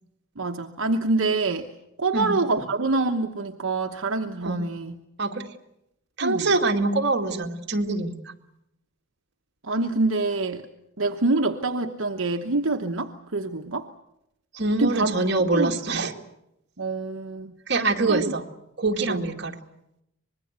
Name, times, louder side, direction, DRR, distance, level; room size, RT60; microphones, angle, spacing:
voice 1, 0.4-1.7 2.0-4.9 6.2-6.5 9.6-10.6 11.0-13.9 14.7-15.1 15.5-15.7 16.8-17.5 18.1-18.2 19.1-19.2, right 3 dB, 70° right, 5 dB, 1.1 m, -26 dB
voice 2, 5.2-5.5 6.2-8.3 14.5-16.1 17.7-18.5 18.8-19.6, right 3 dB, 55° right, 3 dB, 2.1 m, -24 dB
25.0 x 21.0 x 8.1 m, 0.82 s
head